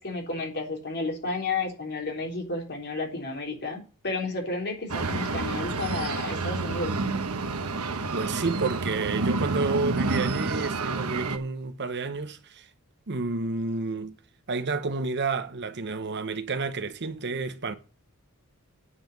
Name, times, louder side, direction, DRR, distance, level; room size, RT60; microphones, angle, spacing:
voice 1, 0.0-6.9, left 3 dB, 50° left, 3.7 m, -32 dB
sound 1, 4.9-11.4, right 3 dB, 75° right, 1.2 m, -29 dB
voice 2, 8.1-12.7 13.1-14.2 14.5-17.7, right 3 dB, 50° right, 1.0 m, -30 dB
9.8 x 5.7 x 7.9 m
head